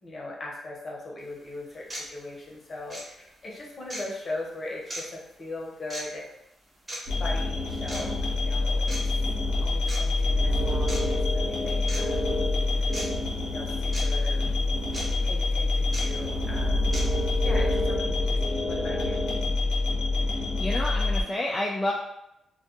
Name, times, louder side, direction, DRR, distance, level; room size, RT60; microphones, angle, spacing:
voice 1, 0.0-6.2 7.2-9.0 9.6-13.0 13.4-14.4 15.2-19.3, left 2 dB, 40° left, -2 dB, 0.8 m, -39 dB
sound 1, 1.2-1.3 1.9-2.1 2.9-3.0 3.9-4.1 4.9-5.0 5.9-6.0 6.9-7.0 7.9-8.1 8.9-9.0 9.9-10.0 10.9-11.0 11.9-12.0 12.9-13.1 13.9-14.0 14.9-15.0 15.9-16.0 16.9-17.0, right 1 dB, 30° right, 1.1 m, -35 dB
sound 2, 7.1-21.2, left 2 dB, 90° left, 0.7 m, -26 dB
voice 2, 20.6-21.9, left 1 dB, 20° left, -3 dB, 0.3 m, -29 dB
2.2 x 2.2 x 2.8 m, 0.84 s
cardioid pair, 75°, 0 cm